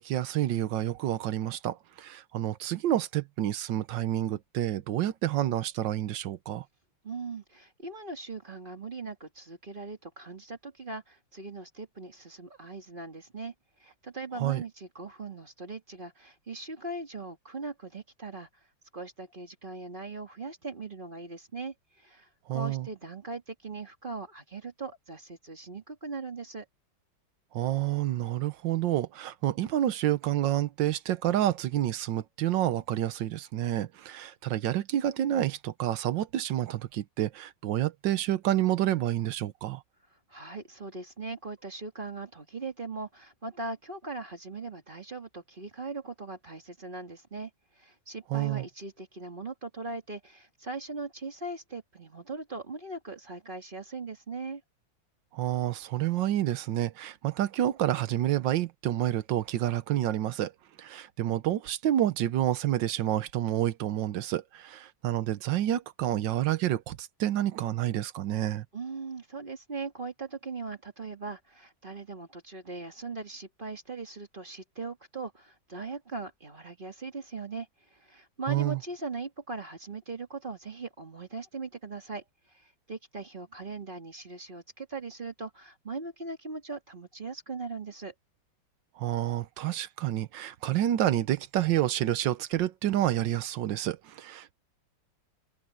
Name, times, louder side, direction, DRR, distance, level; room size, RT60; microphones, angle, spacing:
voice 1, 0.0-6.6 14.4-14.6 22.5-22.9 27.5-39.8 48.3-48.6 55.3-60.5 60.8-68.6 78.5-78.8 89.0-94.5, right 12 dB, 75° right, 1.5 m, -29 dB
voice 2, 7.0-13.5 13.8-18.5 18.9-26.7 40.3-47.5 47.8-54.6 68.7-82.2 82.5-88.1, right 3 dB, 25° right, 2.1 m, -40 dB
open air
omnidirectional pair, 2.0 m